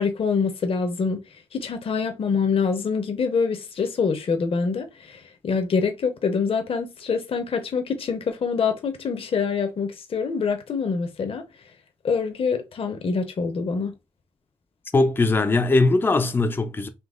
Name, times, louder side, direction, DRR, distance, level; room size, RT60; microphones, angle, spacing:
voice 1, 0.0-11.7 12.0-13.9, left 5 dB, 50° left, 0.7 m, -25 dB
voice 2, 14.9-16.9, left 3 dB, 15° left, 0.4 m, -20 dB
3.9 x 2.8 x 3.6 m
wide cardioid pair, 140°, 12 cm